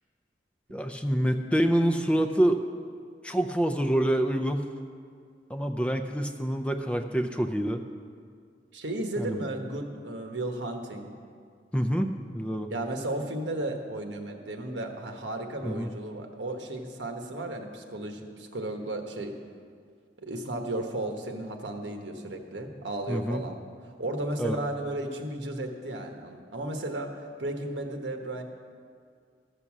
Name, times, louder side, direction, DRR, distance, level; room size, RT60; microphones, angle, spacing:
voice 1, 0.7-2.6 3.2-4.7 5.5-7.8 9.2-9.4 11.7-12.1 12.3-12.7 15.6-15.9 23.1-23.4 24.4-24.6, equal, 5° left, 7 dB, 0.5 m, -26 dB
voice 2, 8.7-11.1 12.7-19.3 20.2-23.6 23.8-28.4, right 1 dB, 90° right, 4 dB, 1.3 m, -34 dB
13.5 x 6.8 x 7.3 m, 2.1 s
head